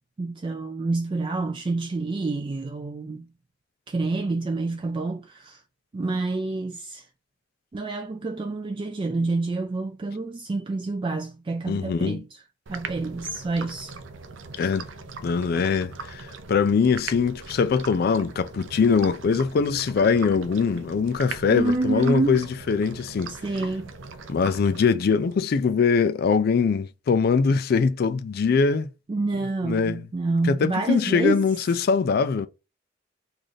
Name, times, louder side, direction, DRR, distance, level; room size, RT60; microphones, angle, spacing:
voice 1, 0.2-3.3 3.9-5.6 5.9-7.1 7.7-12.4 12.7-13.9 14.5-14.7 21.5-22.4 23.3-23.9 29.1-31.5, right 3 dB, 25° right, 0.3 m, -28 dB
voice 2, 11.7-12.2 14.6-14.9 15.2-23.3 24.3-28.9 29.6-30.0 30.5-32.5, left 5 dB, 55° left, 0.3 m, -22 dB
sound 1, 12.7-25.4, right 4 dB, 80° right, 0.5 m, -40 dB
3.2 x 2.5 x 3.9 m
head